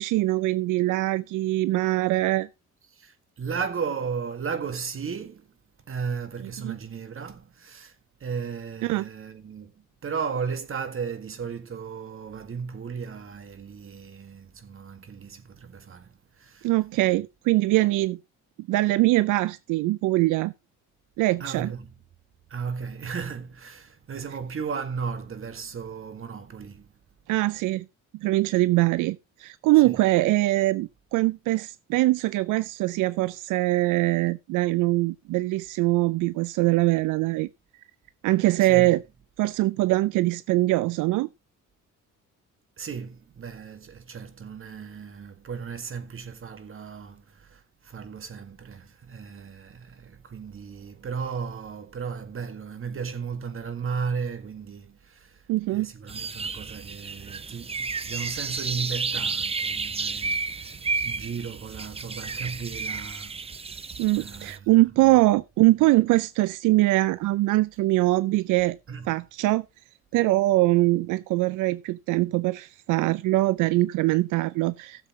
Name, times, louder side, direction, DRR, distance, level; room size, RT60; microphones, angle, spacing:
voice 1, 0.0-2.5 6.6-6.8 8.8-9.1 16.6-18.2 18.6-20.5 21.2-21.7 27.3-27.9 28.2-37.5 38.2-39.0 39.4-41.3 55.5-55.9 64.0-68.8 69.1-69.6 70.1-75.1, right 18 dB, 85° right, 0.5 m, -23 dB
voice 2, 2.9-5.5 5.9-8.0 8.2-16.7 21.4-21.9 22.5-26.9 29.8-30.0 38.6-38.9 42.8-55.4 55.7-63.7 64.1-64.7 65.0-65.1 68.9-69.1, right 6 dB, 45° right, 1.9 m, -35 dB
sound 1, 56.1-64.6, right 4 dB, 20° right, 0.6 m, -32 dB
16.0 x 7.3 x 3.1 m
cardioid pair, 90°, 30 cm